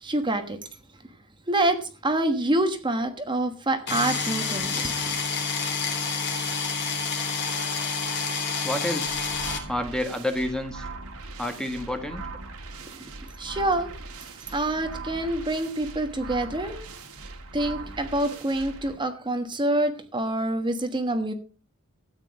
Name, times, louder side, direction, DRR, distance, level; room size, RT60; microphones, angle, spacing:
voice 1, 0.0-0.6 1.5-5.1 12.9-13.1 13.4-13.9 14.5-16.8 17.5-21.3, right 1 dB, 20° right, 7 dB, 1.3 m, -26 dB
sound 1, 3.9-9.6, left 5 dB, 55° left, 3.4 m, -28 dB
voice 2, 8.6-9.2 9.7-10.8 11.4-12.2, left 1 dB, 5° left, 6 dB, 1.4 m, -29 dB
sound 2, 9.0-18.9, right 3 dB, 80° right, 2.1 m, -40 dB
13.0 x 9.3 x 5.2 m, 0.36 s
head